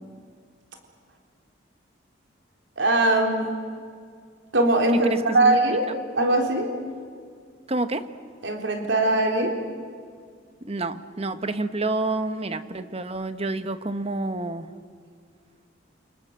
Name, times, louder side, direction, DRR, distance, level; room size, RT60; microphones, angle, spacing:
voice 1, 2.8-3.5 4.5-5.9 6.2-6.7 8.4-9.6, right 2 dB, 85° right, 2 dB, 3.7 m, -21 dB
voice 2, 5.0-5.6 7.7-8.1 10.6-14.7, right 2 dB, 35° right, 10 dB, 1.2 m, -28 dB
29.0 x 26.0 x 7.6 m, 2.1 s
head